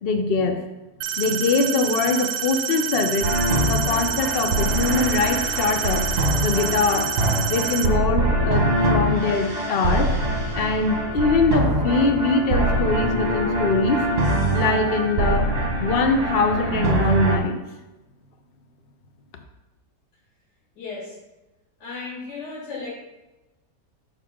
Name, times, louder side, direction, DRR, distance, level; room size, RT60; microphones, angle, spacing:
voice 1, 0.0-0.6 1.2-3.3 3.7-6.1 6.4-7.1 7.5-10.1 10.5-14.0 14.5-15.5 15.8-17.6, left 3 dB, 50° left, 5 dB, 0.7 m, -22 dB
sound 1, 1.0-7.9, right 9 dB, 70° right, 1.0 m, -28 dB
sound 2, 3.2-17.4, right 1 dB, 40° right, 1.1 m, -23 dB
voice 2, 20.8-21.2 21.8-22.9, left 4 dB, 80° left, -5 dB, 2.7 m, -34 dB
6.6 x 6.5 x 3.6 m, 1.0 s
omnidirectional pair, 1.8 m